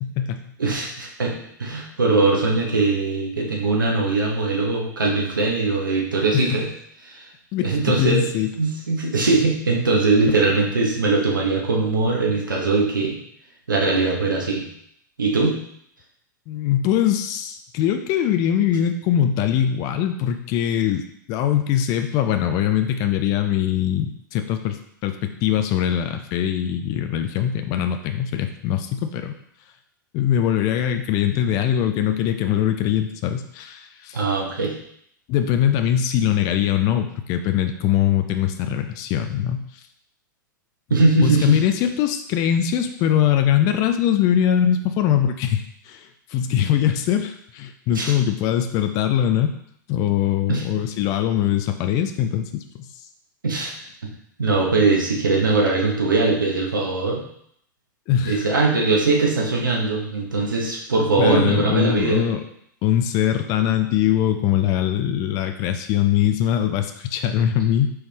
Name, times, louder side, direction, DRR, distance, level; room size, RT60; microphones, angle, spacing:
voice 1, 0.0-0.4 6.3-6.6 7.5-8.5 16.5-21.0 21.3-29.3 30.1-34.2 35.3-39.7 41.2-49.6 49.9-52.9 58.1-58.6 61.2-62.4 62.8-67.9, left 10 dB, 35° left, 7 dB, 0.4 m, -22 dB
voice 2, 0.6-1.3 1.6-6.7 7.0-7.3 7.6-8.3 8.6-13.2 13.7-14.6 15.2-15.6 34.1-34.7 40.9-41.6 47.9-48.1 50.5-50.6 53.4-53.7 54.4-57.2 58.2-62.2, right 3 dB, 75° right, -1 dB, 1.1 m, -21 dB
4.7 x 3.2 x 3.0 m, 0.69 s
figure-of-eight pair, 95°, 11 cm